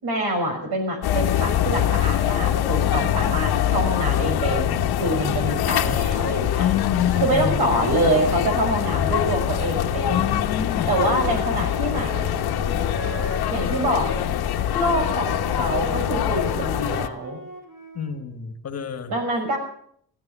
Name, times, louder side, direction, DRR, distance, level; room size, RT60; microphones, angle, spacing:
voice 1, 0.0-6.7 7.2-10.3 10.9-12.4 13.5-14.2 14.7-17.4 19.1-19.6, right 1 dB, 80° right, 4 dB, 6.0 m, -25 dB
sound 1, 1.0-17.1, left 10 dB, 75° left, 1.1 m, -24 dB
voice 2, 6.6-7.6 10.1-10.9 17.9-19.1, left 9 dB, 40° left, 8 dB, 1.5 m, -26 dB
Wind instrument woodwind instrument, 10.8-18.1, right 2 dB, 55° right, 5.0 m, -39 dB
15.5 x 13.0 x 7.1 m, 0.64 s
cardioid pair, 150°, 38 cm